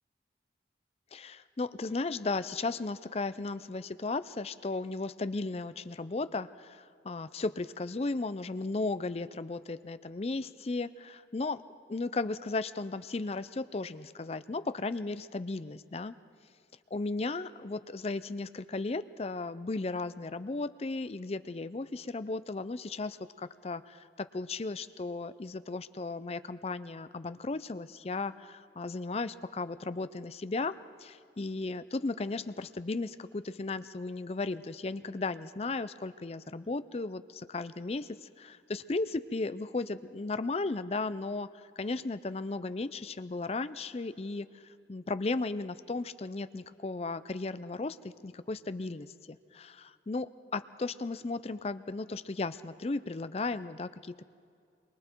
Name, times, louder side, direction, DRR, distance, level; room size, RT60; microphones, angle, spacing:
voice 1, 1.1-11.6 11.9-16.1 16.9-54.2, left 3 dB, 35° left, 13 dB, 0.5 m, -35 dB
27.0 x 23.0 x 4.5 m, 2.5 s
head